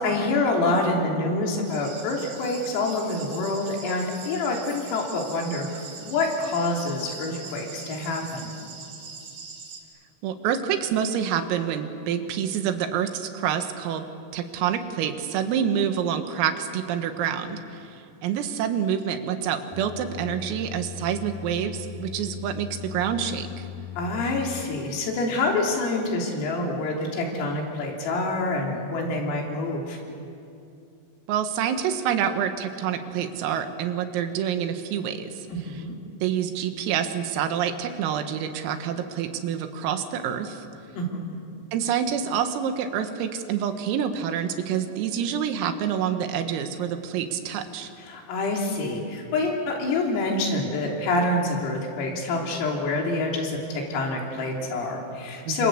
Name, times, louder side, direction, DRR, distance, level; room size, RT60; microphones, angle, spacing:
voice 1, 0.0-8.5 24.0-30.0 35.5-36.0 41.0-41.4 48.0-55.7, left 2 dB, 80° left, 0 dB, 6.1 m, -27 dB
sound 1, 1.7-9.8, right 5 dB, 55° right, 4.2 m, -42 dB
voice 2, 10.2-14.1 14.3-17.8 18.2-23.7 31.3-35.3 36.2-40.6 41.7-47.9 55.5-55.7, right 8 dB, 85° right, 7 dB, 4.2 m, -27 dB
sound 2, 19.7-24.6, left 11 dB, 55° left, 2.6 m, -39 dB
27.5 x 26.5 x 8.1 m, 2.6 s
omnidirectional pair, 5.9 m